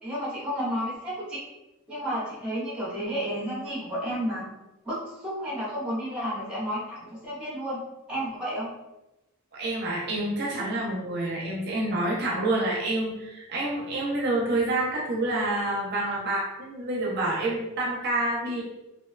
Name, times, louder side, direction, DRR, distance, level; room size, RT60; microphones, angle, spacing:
voice 1, 0.0-1.4 1.9-4.4 4.8-7.8 8.1-8.7, equal, 5° right, -7 dB, 0.7 m, -31 dB
voice 2, 9.5-18.6, right 2 dB, 50° right, -3 dB, 0.5 m, -28 dB
2.5 x 2.2 x 2.3 m, 0.98 s
head